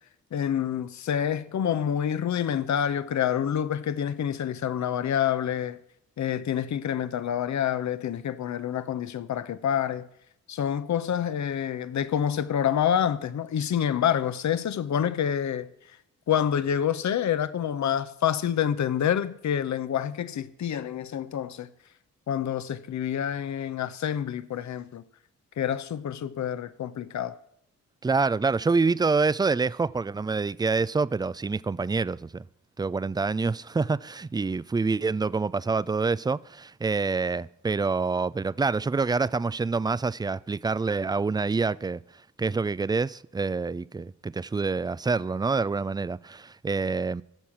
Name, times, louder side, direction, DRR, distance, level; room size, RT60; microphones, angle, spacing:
voice 1, 0.3-5.8 6.2-10.1 10.5-15.7 16.3-21.7 22.3-25.0 25.6-27.4, left 9 dB, 55° left, 0.9 m, -27 dB
voice 2, 28.0-32.4 32.8-42.0 42.4-47.2, right 4 dB, 10° right, 0.4 m, -26 dB
16.0 x 7.0 x 5.9 m
supercardioid pair, 45°, 35 cm